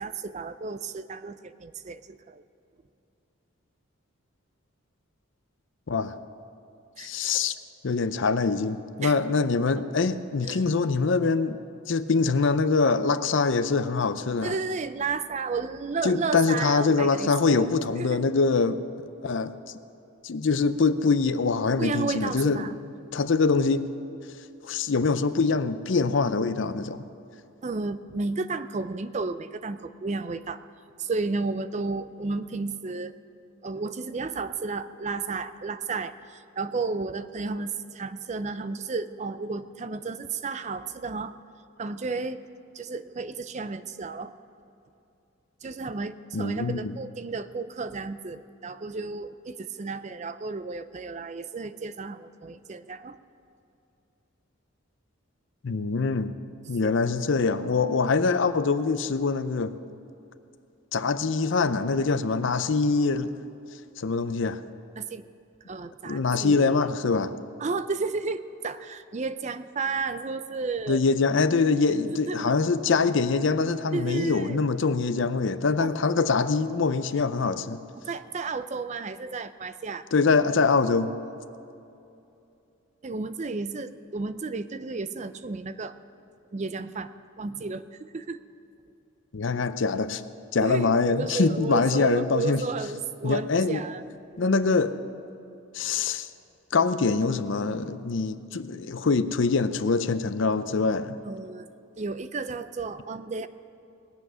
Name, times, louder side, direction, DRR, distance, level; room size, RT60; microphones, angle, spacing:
voice 1, 0.0-2.4 7.0-7.1 9.0-9.2 10.4-10.6 14.4-17.7 18.0-18.3 21.8-22.7 27.6-30.6 31.0-33.1 33.6-41.4 41.8-42.4 42.7-44.3 45.6-53.2 56.8-56.9 57.2-57.3 64.9-65.2 65.7-66.9 67.6-71.0 72.2-72.6 73.9-74.6 75.8-76.0 78.0-80.1 83.0-85.9 86.5-87.1 87.4-88.4 90.6-94.0 101.2-101.7 102.0-103.5, right 4 dB, 35° right, 12 dB, 0.4 m, -32 dB
voice 2, 7.0-7.5 7.8-11.6 11.9-14.5 16.0-18.8 19.2-19.5 20.2-22.7 23.1-23.9 24.6-27.0 46.3-46.9 55.6-56.3 56.7-59.7 60.9-63.3 64.0-64.6 66.0-67.3 70.9-77.8 80.1-81.1 89.3-90.2 90.5-92.6 93.2-93.8 94.4-95.0 95.7-96.3 96.7-101.2, left 4 dB, 60° left, 12 dB, 0.5 m, -24 dB
20.0 x 7.9 x 6.2 m, 2.7 s
head